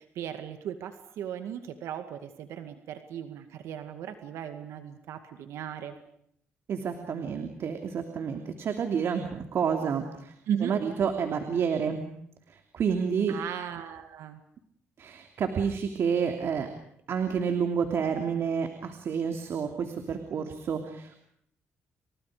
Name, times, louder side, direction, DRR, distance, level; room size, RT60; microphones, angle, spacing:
voice 1, 0.0-6.0 10.5-10.8 13.3-14.4, right 9 dB, 85° right, 7 dB, 2.2 m, -36 dB
voice 2, 6.7-10.3 10.6-12.0 12.7-13.3 15.0-16.7 17.1-21.2, right 6 dB, 65° right, 5 dB, 3.0 m, -29 dB
30.0 x 27.0 x 5.1 m, 0.72 s
cardioid pair, 85°, 5 cm